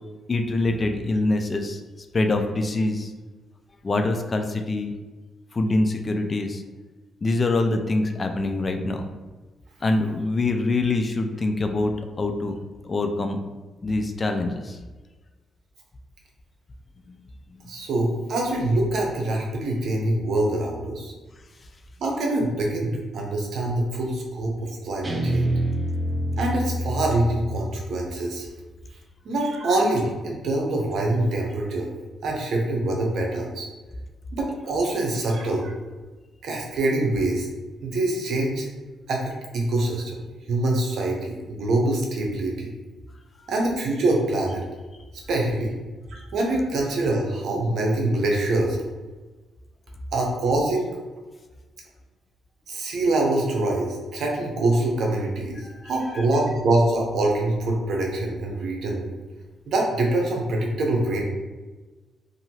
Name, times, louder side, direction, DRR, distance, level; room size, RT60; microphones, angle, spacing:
voice 1, 0.3-1.8 2.1-3.1 3.8-4.9 5.5-6.6 7.2-9.0 9.8-12.6 12.8-13.4 13.8-14.8 17.1-17.2 55.8-55.9, left 2 dB, 35° left, 6 dB, 0.3 m, -24 dB
voice 2, 17.7-21.1 22.0-25.5 26.4-28.5 29.2-31.9 32.2-33.7 34.3-35.7 36.4-37.5 37.8-38.7 39.1-40.2 40.5-42.7 43.5-44.6 45.3-45.7 46.1-48.8 50.1-50.9 52.7-59.1 59.7-61.2, right 2 dB, 70° right, 0 dB, 0.7 m, -24 dB
Guitar, 25.0-28.2, right 1 dB, 25° right, 0.6 m, -27 dB
2.8 x 2.6 x 2.8 m, 1.3 s
cardioid pair, 85°, 0 cm